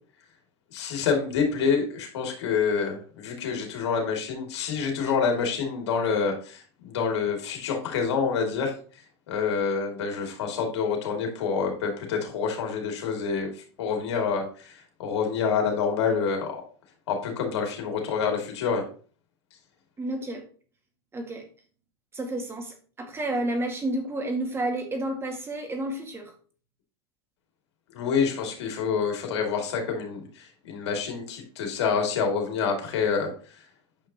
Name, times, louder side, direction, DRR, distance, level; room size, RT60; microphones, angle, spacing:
voice 1, 0.7-8.7 9.3-16.6 17.1-18.8 27.9-33.6, left 6 dB, 85° left, 2 dB, 2.8 m, -27 dB
voice 2, 20.0-20.4 21.1-21.5 22.1-26.3, right 1 dB, 15° right, 3 dB, 2.0 m, -30 dB
8.7 x 5.8 x 3.0 m, 0.40 s
supercardioid pair, 125°, 14 cm